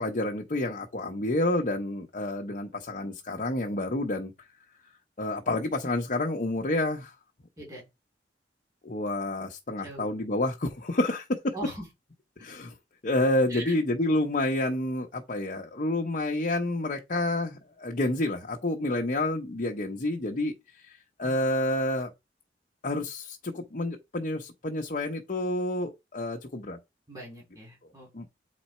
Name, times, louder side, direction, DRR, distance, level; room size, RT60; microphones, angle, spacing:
voice 1, 0.0-4.3 5.2-7.1 8.8-11.5 12.4-12.7 13.0-22.1 22.8-26.8 28.1-28.3, left 1 dB, 45° left, 0.9 m, -29 dB
voice 2, 11.5-11.9 13.5-13.8 21.2-21.4 27.1-28.3, right 1 dB, 20° right, 3.6 m, -41 dB
8.1 x 4.2 x 4.3 m
head